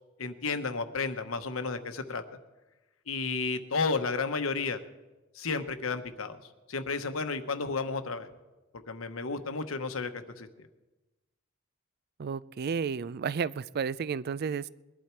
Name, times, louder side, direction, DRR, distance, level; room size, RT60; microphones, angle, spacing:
voice 1, 0.2-2.2 3.1-4.8 5.3-6.4 6.7-8.3 8.9-10.7, left 4 dB, 80° left, 8 dB, 1.1 m, -32 dB
voice 2, 12.2-14.7, right 6 dB, 50° right, 19 dB, 0.4 m, -32 dB
21.5 x 11.5 x 4.5 m, 1.1 s
head